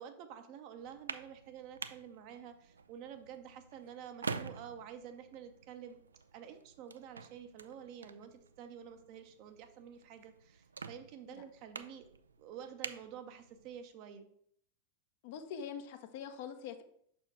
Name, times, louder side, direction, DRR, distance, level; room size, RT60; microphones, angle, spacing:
voice 1, 0.0-6.0 6.3-12.1 12.4-14.3, right 8 dB, 45° right, 7 dB, 0.7 m, -49 dB
sound 1, 0.8-13.9, right 5 dB, 75° right, 0.3 m, -48 dB
voice 2, 15.2-16.8, left 7 dB, 50° left, 7 dB, 0.7 m, -44 dB
6.1 x 4.4 x 4.6 m, 0.66 s
figure-of-eight pair, 90°, 0 cm